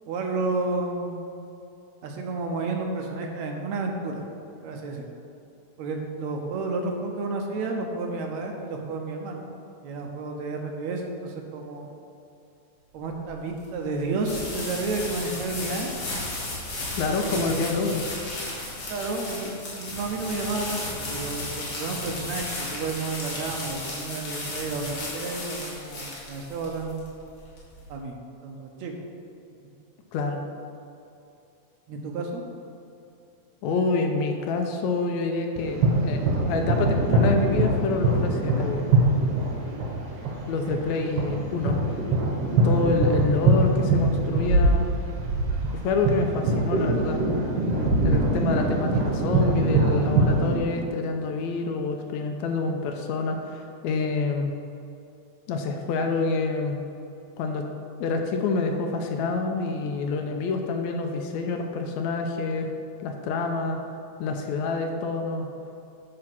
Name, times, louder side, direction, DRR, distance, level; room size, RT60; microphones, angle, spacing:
voice 1, 0.1-1.2 2.0-4.2 4.6-5.1 5.8-9.4 9.8-11.9 12.9-15.9 17.2-17.7 18.9-27.0 27.9-28.2 28.4-28.9 29.6-29.7 31.9-32.4, right 3 dB, 75° right, 2 dB, 2.0 m, -31 dB
sound 1, 13.1-27.9, left 2 dB, 50° left, 2.6 m, -34 dB
voice 2, 17.0-18.1 30.1-30.4 33.6-36.2 36.5-38.8 40.5-41.9 42.6-44.9 45.7-47.2 48.0-54.5 55.5-56.8 57.4-57.7 58.0-62.7 63.0-63.8 64.2-65.5, left 3 dB, 80° left, 4 dB, 1.8 m, -27 dB
sound 2, 35.6-50.6, right 2 dB, 60° right, 2.2 m, -23 dB
9.5 x 4.9 x 6.1 m, 2.6 s
omnidirectional pair, 3.5 m